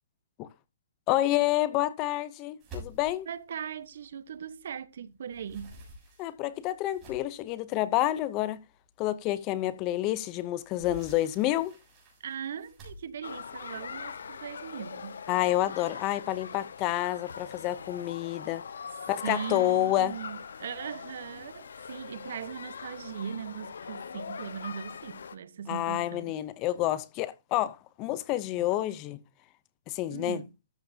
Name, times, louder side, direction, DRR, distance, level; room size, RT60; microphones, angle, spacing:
voice 1, 1.1-3.3 6.2-8.6 9.0-11.7 15.3-18.6 19.1-20.1 25.7-29.2 29.9-30.4, left 14 dB, 20° left, 0.6 m, -29 dB
sound 1, 2.6-4.8 5.1-7.5 8.2-8.3 8.7-8.8 10.2-14.5, right 1 dB, 20° right, 6.9 m, -49 dB
voice 2, 3.2-5.7 12.2-15.2 19.2-26.4 30.1-30.5, right 8 dB, 55° right, 1.1 m, -39 dB
sound 2, 13.2-25.4, left 6 dB, 75° left, 1.1 m, -42 dB
13.5 x 9.2 x 2.8 m
hypercardioid pair, 165°, 0 cm